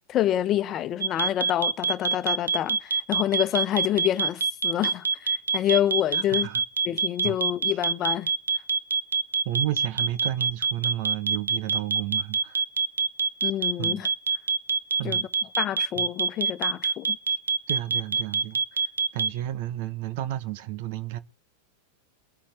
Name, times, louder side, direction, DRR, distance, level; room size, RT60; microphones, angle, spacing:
voice 1, 0.1-6.5 6.8-8.3 13.4-14.1 15.0-15.2 15.6-17.2, left 12 dB, 35° left, 1.0 m, -27 dB
sound 1, 1.0-19.3, right 5 dB, 85° right, 0.7 m, -24 dB
voice 2, 6.1-6.6 7.2-7.4 9.4-12.6 13.8-14.0 15.0-15.3 15.9-16.0 17.3-17.4 17.7-21.2, right 13 dB, 55° right, 1.1 m, -32 dB
23.5 x 8.7 x 3.5 m
hypercardioid pair, 95°, 0 cm